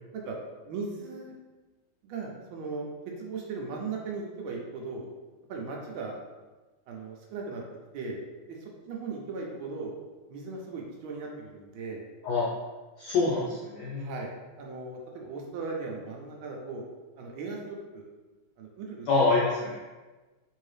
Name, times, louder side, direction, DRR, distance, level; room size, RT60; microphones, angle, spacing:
voice 1, 0.6-1.4 2.0-2.9 3.2-5.1 5.5-6.2 6.9-7.6 7.9-8.2 8.5-9.9 10.3-12.0 14.0-14.3 14.6-16.8 17.2-18.1 18.6-19.1, right 4 dB, 75° right, 0 dB, 1.4 m, -37 dB
voice 2, 13.0-14.1 19.1-19.8, left 3 dB, 75° left, -6 dB, 0.9 m, -26 dB
3.8 x 2.7 x 3.2 m, 1.2 s
omnidirectional pair, 2.4 m